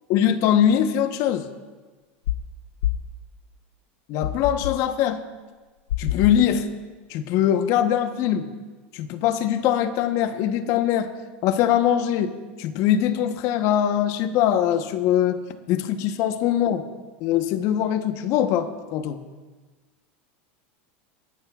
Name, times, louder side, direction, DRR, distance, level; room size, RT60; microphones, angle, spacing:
voice 1, 0.1-1.5 4.1-5.2 6.0-6.7 7.1-8.5 8.9-11.1 11.4-12.3 12.6-16.8 17.2-19.2, left 10 dB, 55° left, 9 dB, 1.0 m, -22 dB
sound 1, 2.3-2.5 2.8-3.1 4.2-4.8 5.9-6.5, left 11 dB, 85° left, 0.5 m, -27 dB
21.5 x 14.5 x 2.4 m, 1.3 s
supercardioid pair, 110°, 6 cm